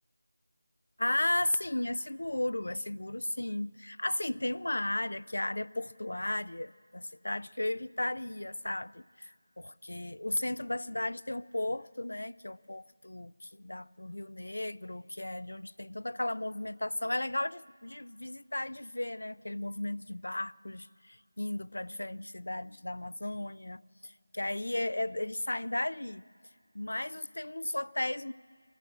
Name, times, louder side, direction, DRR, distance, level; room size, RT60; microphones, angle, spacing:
voice 1, 1.0-26.2 26.7-28.3, left 1 dB, 65° left, 21 dB, 0.5 m, -35 dB
24.0 x 18.0 x 7.7 m, 2.3 s
figure-of-eight pair, 165°, 0 cm